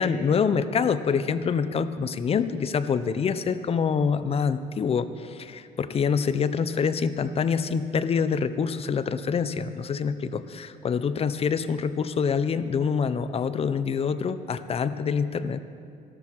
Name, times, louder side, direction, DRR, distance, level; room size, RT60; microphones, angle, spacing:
voice 1, 0.0-15.6, left 6 dB, 35° left, 13 dB, 0.6 m, -26 dB
15.0 x 13.0 x 4.6 m, 2.4 s
cardioid pair, 110°, 17 cm